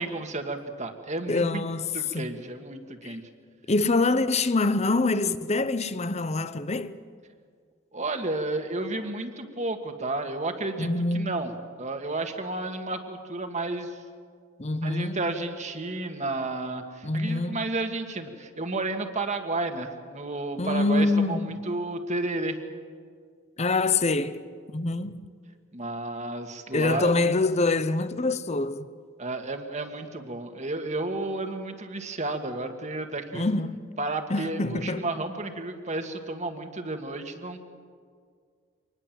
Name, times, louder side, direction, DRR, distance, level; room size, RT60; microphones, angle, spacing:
voice 1, 0.0-1.7 1.9-3.2 7.9-10.9 11.1-11.5 11.8-14.0 14.7-22.6 25.7-27.1 29.2-33.5 34.0-37.6, right 2 dB, 35° right, 1.8 m, -32 dB
voice 2, 1.3-1.9 2.1-2.3 3.0-3.2 3.7-7.0 10.8-11.3 14.6-15.2 17.0-17.6 20.6-21.7 23.6-24.4 24.7-25.2 26.7-28.9 33.3-33.8 34.3-35.1, left 3 dB, 30° left, 0.8 m, -25 dB
25.0 x 20.0 x 7.6 m
head